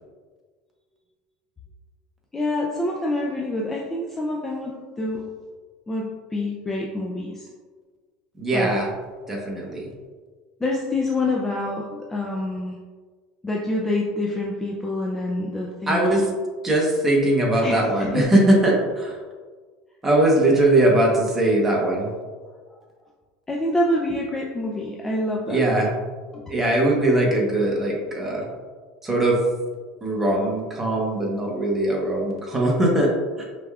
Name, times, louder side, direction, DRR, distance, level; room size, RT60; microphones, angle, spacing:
voice 1, 2.3-5.2 5.9-7.5 8.5-8.7 9.4-9.6 10.6-12.8 13.4-16.3 17.6-18.4 22.7-22.8 23.5-25.6 26.3-26.4, left 1 dB, 10° left, -2 dB, 0.4 m, -27 dB
voice 2, 8.4-8.9 9.3-9.9 15.9-16.3 16.6-19.2 20.0-22.1 25.5-25.9 26.5-28.5 29.0-29.4 30.0-33.1 33.4-33.5, right 1 dB, 10° right, -2 dB, 0.9 m, -20 dB
5.1 x 3.3 x 2.3 m, 1.5 s
cardioid pair, 150°, 3 cm